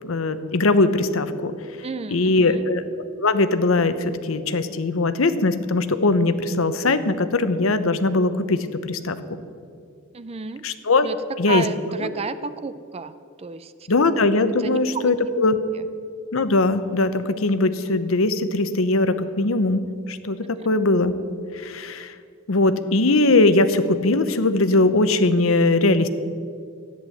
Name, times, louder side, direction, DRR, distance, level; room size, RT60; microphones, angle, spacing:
voice 1, 0.0-1.5 2.1-2.8 3.2-9.2 10.6-11.1 11.4-11.7 12.0-12.1 13.9-15.6 16.3-19.8 20.1-21.1 21.5-22.1 22.5-26.1, left 2 dB, 85° left, 12 dB, 0.9 m, -20 dB
voice 2, 1.8-2.7 10.1-10.7 11.0-11.2 11.5-13.7 14.6-15.1 15.7-15.8, right 4 dB, 30° right, 13 dB, 0.5 m, -31 dB
13.5 x 10.5 x 7.8 m, 2.4 s
head